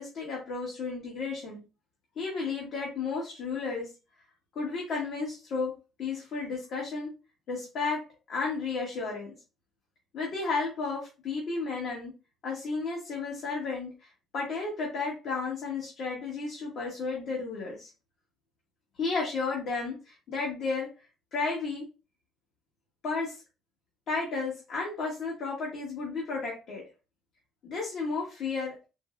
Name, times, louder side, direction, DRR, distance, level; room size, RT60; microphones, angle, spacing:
voice 1, 0.0-1.6 2.2-3.9 4.5-7.1 7.5-8.0 8.3-9.3 10.1-12.1 12.4-17.9 19.0-20.9 21.3-21.9 23.0-23.4 24.1-26.8 27.6-28.9, left 4 dB, 65° left, -3 dB, 1.1 m, -33 dB
4.5 x 2.0 x 2.4 m, 0.30 s
cardioid pair, 105°, 0 cm